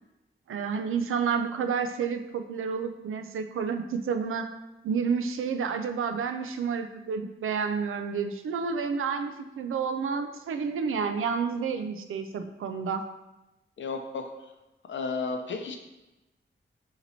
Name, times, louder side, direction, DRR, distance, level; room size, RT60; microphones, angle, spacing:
voice 1, 0.5-4.5 4.8-13.0, right 6 dB, 90° right, 8 dB, 0.4 m, -30 dB
voice 2, 13.8-14.3 14.9-15.8, left 4 dB, 65° left, 4 dB, 0.5 m, -32 dB
4.0 x 2.9 x 4.2 m, 1.0 s
wide cardioid pair, 170°, 21 cm